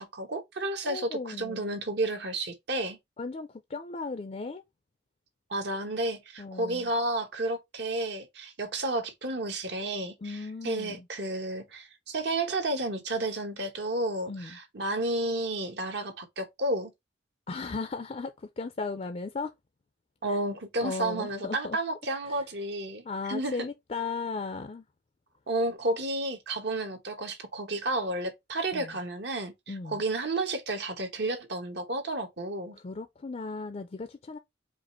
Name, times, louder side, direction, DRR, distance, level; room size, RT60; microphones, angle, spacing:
voice 1, 0.0-3.0 5.5-16.9 20.2-23.5 25.5-29.5 29.9-32.8, right 2 dB, 65° right, 1.1 m, -31 dB
voice 2, 0.8-1.8 3.2-4.6 6.4-6.9 10.2-11.1 14.3-14.6 17.5-19.5 20.3-20.4 20.8-21.8 22.2-22.4 23.0-24.8 28.7-29.0 29.7-30.0 32.7-34.4, left 4 dB, 35° left, 0.4 m, -36 dB
5.0 x 2.5 x 4.2 m
head